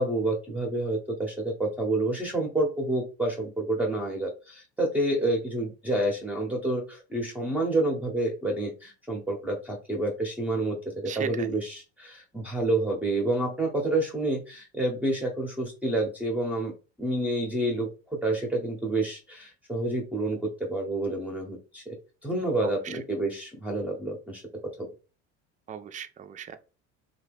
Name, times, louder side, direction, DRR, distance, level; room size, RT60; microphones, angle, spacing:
voice 1, 0.0-16.7 17.0-21.8 22.2-24.4, right 2 dB, 5° right, 0.8 m, -28 dB
voice 2, 11.1-11.6 22.6-23.0 25.7-26.6, right 8 dB, 25° right, 0.4 m, -37 dB
2.7 x 2.3 x 3.4 m
supercardioid pair, 100°, 33 cm